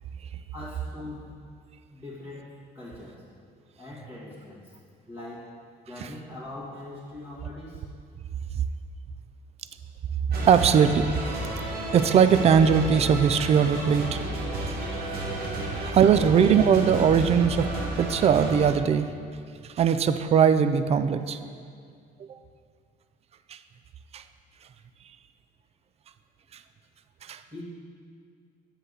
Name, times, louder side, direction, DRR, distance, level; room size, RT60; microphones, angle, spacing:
voice 1, 0.5-1.4 1.9-3.2 3.8-4.7 5.1-5.5 5.9-7.8 27.5-27.6, left 2 dB, 15° right, -11 dB, 1.8 m, -41 dB
sound 1, 10.3-18.7, right 2 dB, 65° right, 1.2 m, -32 dB
voice 2, 10.5-11.4 11.9-14.2 14.7-14.8 15.9-17.7 18.0-19.1 19.8-21.4 22.3-22.4 23.5-23.6 24.1-24.2 27.2-27.4, right 7 dB, 40° right, 11 dB, 0.4 m, -20 dB
7.7 x 6.3 x 4.0 m, 2.2 s
cardioid pair, 110°, 17 cm